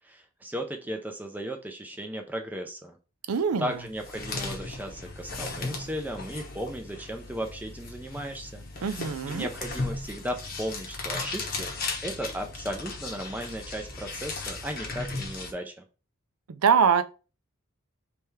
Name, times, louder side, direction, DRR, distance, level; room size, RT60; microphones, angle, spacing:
voice 1, 0.0-3.0 3.6-8.9 9.3-11.7 12.0-15.8, equal, 10° right, 0.4 m, -36 dB
voice 2, 3.3-3.8 8.8-9.5 16.5-17.0, right 6 dB, 90° right, 0.5 m, -23 dB
sound 1, 3.7-15.5, left 3 dB, 45° left, 0.9 m, -36 dB
3.4 x 3.2 x 4.5 m
head